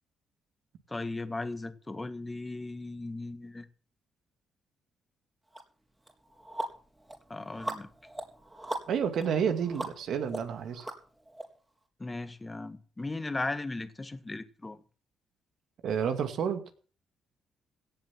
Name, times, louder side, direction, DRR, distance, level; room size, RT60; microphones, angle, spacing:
voice 1, 0.9-3.7 7.3-7.9 12.0-14.8, left 2 dB, 20° left, 1.5 m, -37 dB
sound 1, 5.5-5.6 6.1-11.4, right 1 dB, 15° right, 3.7 m, -40 dB
voice 2, 8.9-10.9 15.8-16.6, right 7 dB, 70° right, 2.2 m, -30 dB
17.0 x 7.2 x 7.5 m
cardioid pair, 90°, 0 cm